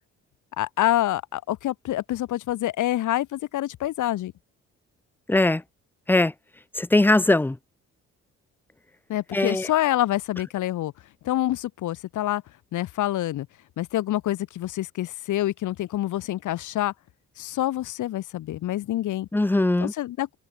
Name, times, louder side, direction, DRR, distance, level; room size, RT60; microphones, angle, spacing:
voice 1, 0.6-4.3 9.1-10.9 11.2-12.4 12.7-13.5 13.8-16.9 17.4-19.3 19.8-20.3, left 14 dB, 80° left, 2.2 m, -26 dB
voice 2, 5.3-5.6 6.1-6.3 6.8-7.6 9.3-9.7 19.3-19.9, left 2 dB, 5° left, 0.5 m, -20 dB
cardioid pair, 90°, 30 cm